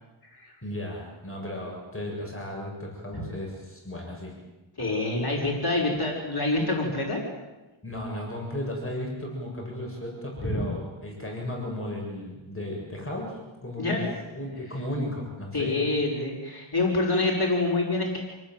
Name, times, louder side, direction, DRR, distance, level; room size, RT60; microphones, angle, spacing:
voice 1, 0.6-4.3 7.8-14.0 14.3-15.7, left 1 dB, 25° left, -1 dB, 7.4 m, -35 dB
voice 2, 4.8-7.2 10.4-10.6 13.8-14.1 15.5-18.2, left 2 dB, 50° left, -1 dB, 5.6 m, -26 dB
28.5 x 19.0 x 9.2 m, 1.1 s
wide cardioid pair, 80°, 49 cm